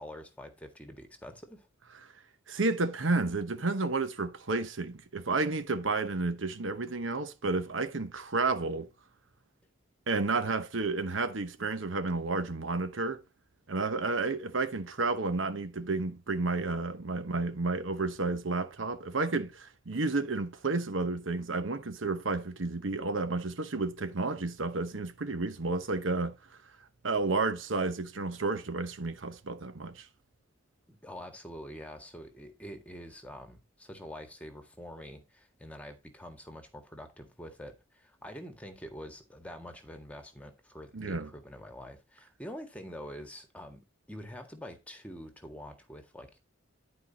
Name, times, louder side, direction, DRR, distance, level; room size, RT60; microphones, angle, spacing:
voice 1, 0.0-1.7 30.9-43.8 44.1-46.4, equal, 5° left, 1.7 m, -46 dB
voice 2, 2.5-8.9 10.1-13.2 13.7-26.4 27.0-30.1 40.9-41.3, right 3 dB, 75° right, 1.0 m, -31 dB
11.0 x 4.7 x 4.0 m
head